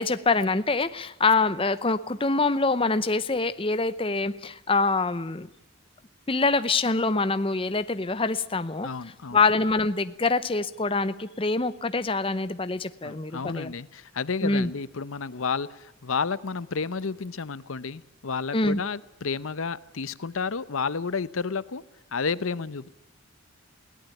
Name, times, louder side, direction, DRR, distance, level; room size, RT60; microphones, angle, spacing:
voice 1, 0.0-5.5 6.3-8.9 9.3-13.7 14.4-14.7 18.5-18.8, left 3 dB, 25° left, 12 dB, 0.7 m, -25 dB
voice 2, 8.8-9.4 13.0-21.8 22.1-22.9, left 5 dB, 75° left, 17 dB, 0.8 m, -31 dB
20.5 x 17.5 x 9.2 m, 0.90 s
head